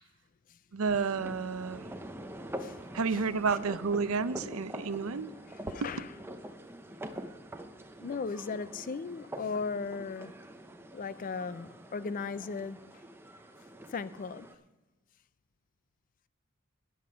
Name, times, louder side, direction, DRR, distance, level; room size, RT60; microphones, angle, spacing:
voice 1, 0.7-1.9 2.9-5.3, right 5 dB, 75° right, 0.6 m, -30 dB
sound 1, 0.9-14.5, right 1 dB, 10° right, 0.6 m, -45 dB
voice 2, 5.7-6.1 8.0-10.3 10.9-12.9 13.9-14.5, left 4 dB, 40° left, 0.4 m, -36 dB
12.5 x 9.6 x 5.1 m
head